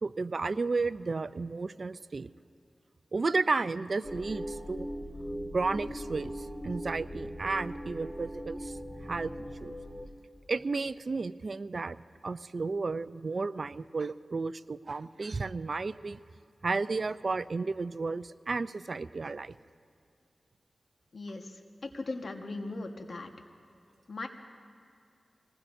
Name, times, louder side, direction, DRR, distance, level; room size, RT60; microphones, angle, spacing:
voice 1, 0.0-2.3 3.1-4.9 5.5-8.8 9.0-9.8 10.5-16.2 16.6-19.5, right 3 dB, 60° right, 15 dB, 0.4 m, -33 dB
sound 1, 4.0-10.1, equal, 15° left, 1.7 m, -40 dB
voice 2, 21.1-21.5 21.8-23.3 24.1-24.3, left 2 dB, 70° left, 4 dB, 1.4 m, -38 dB
26.5 x 19.5 x 2.7 m, 2.5 s
cardioid pair, 45°, 0 cm